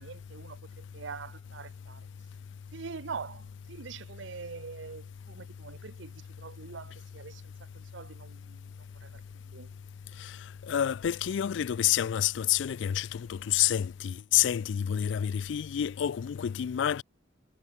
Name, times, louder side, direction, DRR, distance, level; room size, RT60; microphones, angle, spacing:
voice 1, 0.0-2.1 2.7-8.7 9.0-9.7, right 5 dB, 80° right, 0.7 m, -44 dB
voice 2, 10.7-17.0, left 10 dB, 75° left, 0.4 m, -28 dB
head